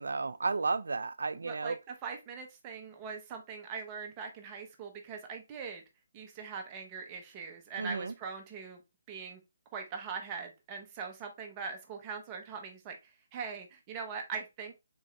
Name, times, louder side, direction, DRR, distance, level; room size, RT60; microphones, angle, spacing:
voice 1, 0.0-1.8 7.8-8.1, right 4 dB, 75° right, 0.4 m, -33 dB
voice 2, 1.4-1.7 2.0-5.8 6.1-8.8 9.1-9.4 9.7-14.8, right 5 dB, 20° right, 0.8 m, -41 dB
3.8 x 2.7 x 3.2 m
hypercardioid pair, 160°, 0 cm